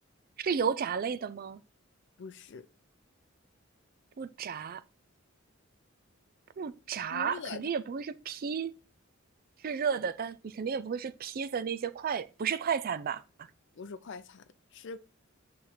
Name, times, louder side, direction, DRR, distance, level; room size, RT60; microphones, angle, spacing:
voice 1, 0.4-1.6 4.2-4.8 6.6-8.7 9.6-13.2, right 6 dB, 45° right, 0.4 m, -33 dB
voice 2, 2.2-2.7 7.1-7.7 13.7-14.4 14.7-15.0, left 5 dB, 60° left, 0.5 m, -42 dB
8.0 x 3.2 x 4.2 m
head